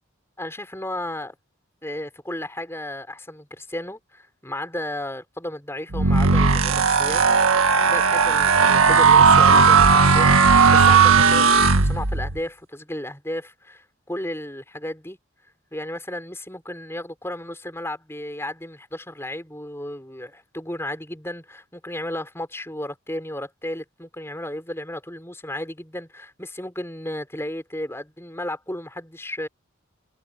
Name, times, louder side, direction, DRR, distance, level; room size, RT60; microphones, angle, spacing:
voice 1, 0.4-1.4 1.8-7.2 7.9-15.2 15.7-29.5, left 1 dB, 10° left, 6.2 m, -34 dB
sound 1, 5.9-12.4, right 5 dB, 80° right, 1.7 m, -16 dB
head